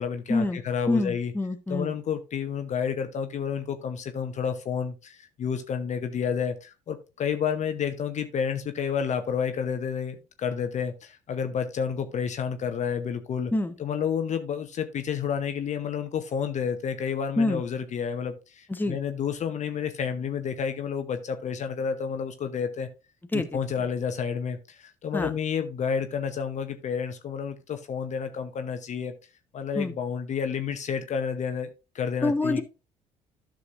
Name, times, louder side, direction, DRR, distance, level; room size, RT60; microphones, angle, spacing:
voice 1, 0.0-1.3 1.7-13.5 13.8-22.9 23.3-29.1 29.5-31.7 31.9-32.6, left 7 dB, 50° left, 8 dB, 0.9 m, -30 dB
voice 2, 0.9-1.9 13.5-13.7 17.4-17.6 18.7-19.0 23.3-23.5 25.1-25.3 29.7-29.9 32.2-32.6, left 2 dB, 10° left, 7 dB, 1.1 m, -26 dB
12.5 x 6.3 x 2.5 m, 0.29 s
hypercardioid pair, 55°, 16 cm